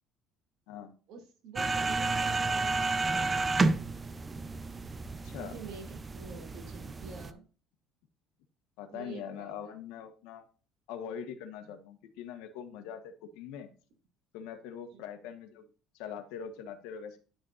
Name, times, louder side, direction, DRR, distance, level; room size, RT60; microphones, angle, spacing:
voice 1, 1.1-3.8 5.4-7.4 8.9-9.7 14.9-15.0, right 5 dB, 60° right, 3 dB, 2.2 m, -48 dB
sound 1, 1.6-7.3, right 3 dB, 15° right, 0.4 m, -31 dB
voice 2, 5.2-5.6 8.8-10.4 10.9-13.7 14.3-15.7 15.9-17.2, left 8 dB, 90° left, 7 dB, 1.3 m, -42 dB
10.0 x 6.5 x 2.5 m, 0.37 s
cardioid pair, 165°, 0 cm